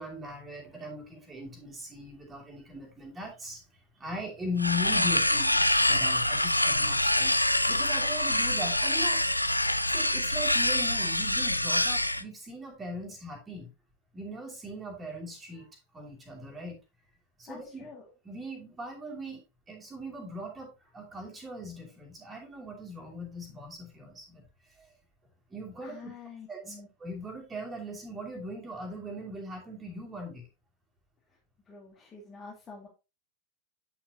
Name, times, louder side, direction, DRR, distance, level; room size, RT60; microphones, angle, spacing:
voice 1, 0.0-9.2 9.9-13.7 14.1-16.8 17.4-17.9 18.2-24.9 25.5-26.1 26.5-30.5, left 1 dB, 15° right, 0 dB, 2.8 m, -39 dB
sound 1, 4.6-12.2, left 1 dB, 85° left, 0.4 m, -25 dB
voice 2, 17.5-18.1 25.8-26.9 31.7-32.9, left 5 dB, 20° left, -3 dB, 2.1 m, -47 dB
9.0 x 6.1 x 2.8 m, 0.26 s
figure-of-eight pair, 90°, 0 cm